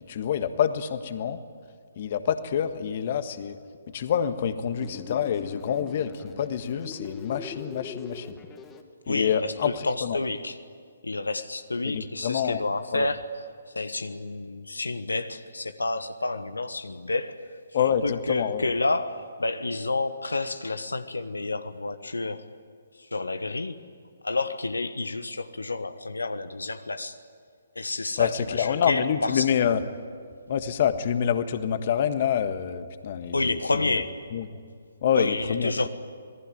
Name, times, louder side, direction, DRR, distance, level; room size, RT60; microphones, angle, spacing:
voice 1, 0.1-1.4 2.0-3.6 3.9-8.4 9.1-9.7 10.0-10.2 11.9-12.6 12.9-13.1 17.7-18.7 28.2-29.8 30.5-33.6 34.3-34.4 35.0-35.7, left 8 dB, 45° left, 10 dB, 1.5 m, -27 dB
sound 1, 4.8-8.8, left 6 dB, 15° left, 2.0 m, -42 dB
voice 2, 9.1-10.6 11.0-22.4 23.0-23.8 24.2-27.2 27.7-29.5 33.3-34.2 35.1-35.9, left 2 dB, 80° left, 10 dB, 1.3 m, -30 dB
27.0 x 19.5 x 9.5 m, 2.2 s
figure-of-eight pair, 135°, 0 cm